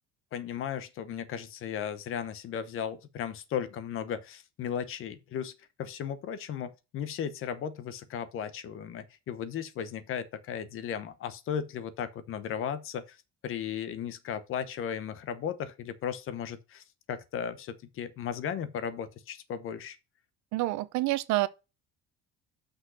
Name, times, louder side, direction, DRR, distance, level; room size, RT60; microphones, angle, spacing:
voice 1, 0.3-5.5 5.8-13.2 13.4-20.0, left 8 dB, 45° left, 1.0 m, -36 dB
voice 2, 20.5-21.5, right 18 dB, 70° right, 0.8 m, -27 dB
6.4 x 5.2 x 6.2 m
cardioid pair, 170°, 29 cm